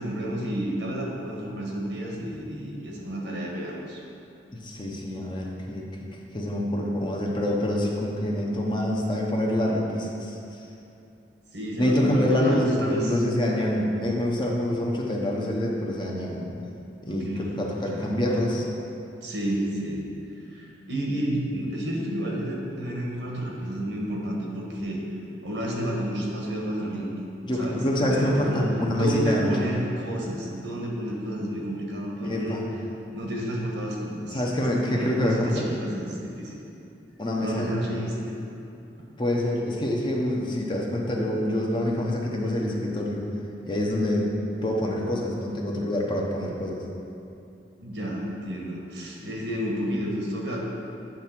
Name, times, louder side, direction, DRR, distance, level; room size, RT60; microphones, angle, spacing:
voice 1, 0.0-4.0 11.5-13.1 17.1-17.6 17.9-18.1 19.2-20.0 20.5-25.0 25.4-27.1 27.6-32.6 33.1-34.6 34.9-36.6 37.4-38.4 47.8-50.6, right 1 dB, 80° right, -2 dB, 1.4 m, -31 dB
voice 2, 4.5-5.9 6.3-10.6 11.7-16.5 17.0-18.7 27.5-29.5 32.2-32.6 34.3-35.7 37.2-37.8 39.2-43.2 43.7-44.3 44.6-46.8 49.2-49.3, left 1 dB, 25° left, -2 dB, 0.8 m, -26 dB
8.9 x 3.5 x 5.9 m, 2.7 s
head